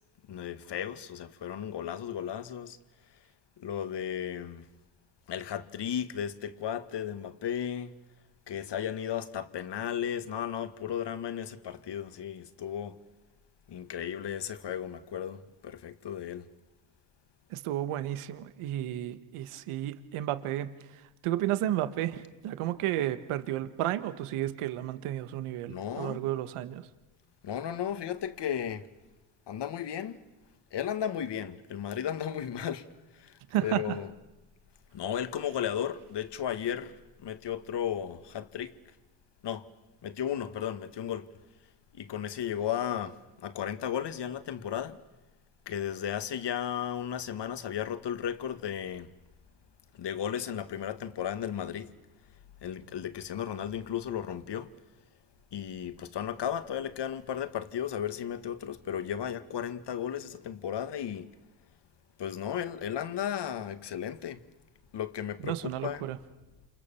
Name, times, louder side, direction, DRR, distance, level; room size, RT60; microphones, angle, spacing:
voice 1, 0.3-2.8 3.6-4.7 5.3-8.0 8.5-13.0 13.7-16.5 25.7-26.2 27.4-28.9 29.5-30.2 30.7-34.1 34.9-38.7 39.4-39.7 40.0-41.3 41.9-45.0 45.7-49.1 49.9-51.9 52.6-54.7 55.5-61.3 62.2-64.4 64.9-66.1, left 9 dB, 55° left, 2.0 m, -35 dB
voice 2, 17.5-26.8 33.5-34.0 65.4-66.2, right 13 dB, 85° right, 1.7 m, -32 dB
28.5 x 28.5 x 7.2 m
cardioid pair, 95°, 49 cm